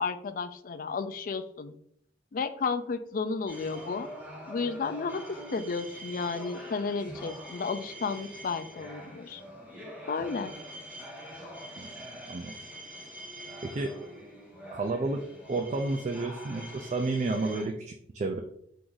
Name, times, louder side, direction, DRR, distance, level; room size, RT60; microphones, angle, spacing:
voice 1, 0.0-1.7 2.3-4.1 4.5-9.4 10.1-10.5, left 4 dB, 45° left, 11 dB, 0.3 m, -33 dB
sound 1, 3.5-17.6, equal, 5° right, 1.1 m, -44 dB
voice 2, 13.6-13.9 14.7-15.2 15.5-18.4, right 3 dB, 40° right, 4 dB, 0.3 m, -31 dB
4.6 x 2.6 x 3.7 m, 0.69 s
head